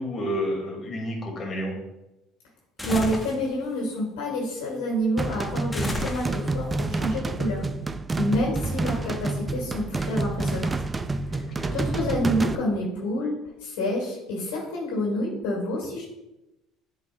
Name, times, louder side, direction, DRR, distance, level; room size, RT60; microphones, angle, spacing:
voice 1, 0.0-1.8 11.3-11.7, equal, 40° left, 1 dB, 2.2 m, -30 dB
voice 2, 2.8-7.6 8.2-10.7 11.3-11.5 11.7-13.3 13.6-16.0, equal, 85° left, -3 dB, 2.2 m, -28 dB
sound 1, 2.8-3.4 5.7-6.7, left 1 dB, 15° left, 1.0 m, -30 dB
sound 2, 5.2-12.6, right 3 dB, 20° right, 0.4 m, -28 dB
8.1 x 5.3 x 2.3 m, 0.94 s
supercardioid pair, 85°, 0 cm